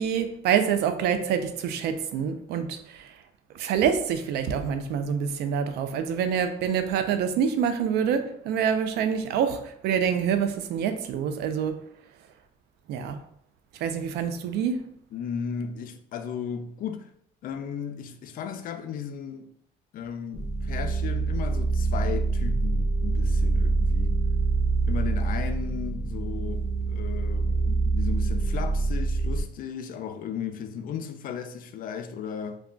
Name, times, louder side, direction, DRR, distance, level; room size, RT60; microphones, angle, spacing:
voice 1, 0.0-3.1 3.5-11.8 12.9-13.2 13.8-14.9, right 7 dB, 75° right, 0.4 m, -26 dB
voice 2, 15.1-17.1 17.4-19.5 19.9-24.2 24.9-32.6, left 7 dB, 55° left, 0.4 m, -35 dB
sound 1, 20.3-29.4, right 3 dB, 35° right, 1.3 m, -25 dB
2.3 x 2.2 x 3.7 m
cardioid pair, 110°, 17 cm